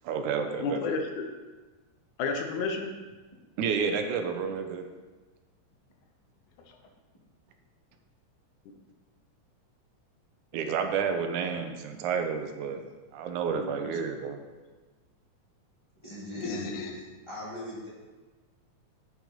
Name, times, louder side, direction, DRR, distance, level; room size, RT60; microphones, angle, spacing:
voice 1, 0.0-1.0 3.6-4.9 10.5-12.8 13.1-14.4, right 6 dB, 85° right, 6 dB, 2.2 m, -30 dB
voice 2, 0.6-1.3 2.2-2.9 6.7-6.8 13.5-13.8 16.4-17.0, left 4 dB, 80° left, 4 dB, 2.4 m, -32 dB
voice 3, 16.0-16.6 17.3-17.9, equal, 10° left, -7 dB, 2.1 m, -39 dB
8.3 x 6.3 x 5.1 m, 1.3 s
omnidirectional pair, 3.4 m